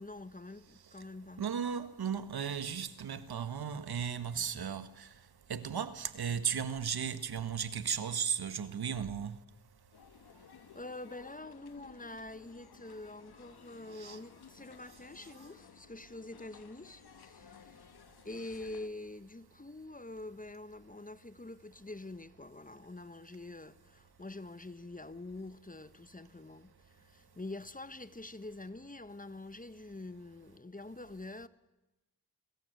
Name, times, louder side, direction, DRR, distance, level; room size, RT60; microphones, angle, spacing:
voice 1, 0.0-1.5 5.5-5.8 10.7-17.8 18.2-31.5, left 2 dB, 20° left, 1.5 m, -46 dB
voice 2, 1.4-5.1 5.5-9.3 14.0-14.2, right 7 dB, 80° right, 1.6 m, -35 dB
sound 1, 9.9-18.9, left 8 dB, 90° left, 1.4 m, -57 dB
30.0 x 21.5 x 8.1 m
cardioid pair, 50°, 37 cm